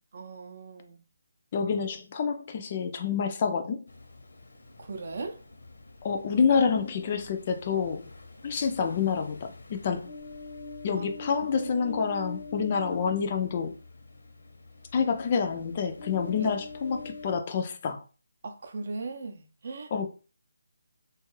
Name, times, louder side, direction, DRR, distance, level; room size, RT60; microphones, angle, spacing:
voice 1, 0.1-1.0 4.8-5.4 10.9-11.1 11.6-11.7 16.4-16.5 18.4-19.9, right 3 dB, 45° right, 0.5 m, -38 dB
voice 2, 1.5-3.8 6.0-8.0 8.4-10.1 10.8-13.7 14.9-18.0 19.9-20.1, left 6 dB, 30° left, 0.3 m, -28 dB
Ocean, 3.9-17.4, left 3 dB, 75° left, 0.7 m, -45 dB
2.6 x 2.3 x 3.1 m
figure-of-eight pair, 165°, 0 cm